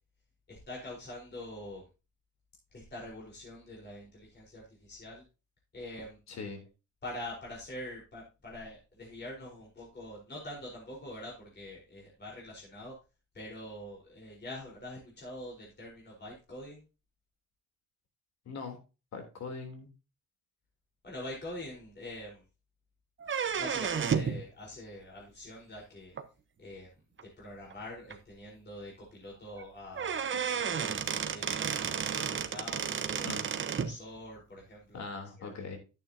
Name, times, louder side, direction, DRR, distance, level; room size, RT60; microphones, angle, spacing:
voice 1, 0.5-1.8 2.7-5.2 5.7-6.2 7.0-12.9 13.3-16.8 21.0-22.4 23.6-26.1 26.6-26.9 27.2-33.3 33.7-35.0 35.4-35.5, left 1 dB, 35° left, -4 dB, 4.5 m, -45 dB
voice 2, 6.3-6.6 18.5-18.8 19.1-19.9 33.2-33.5 34.9-35.8, left 4 dB, 60° left, 4 dB, 3.4 m, -41 dB
sound 1, 23.2-24.4 26.2-26.3 27.2-27.3 27.7-27.8 28.1-28.2 29.6-29.7 30.0-33.9, right 7 dB, 40° right, 1.1 m, -32 dB
11.0 x 9.1 x 2.8 m, 0.30 s
cardioid pair, 90°, 30 cm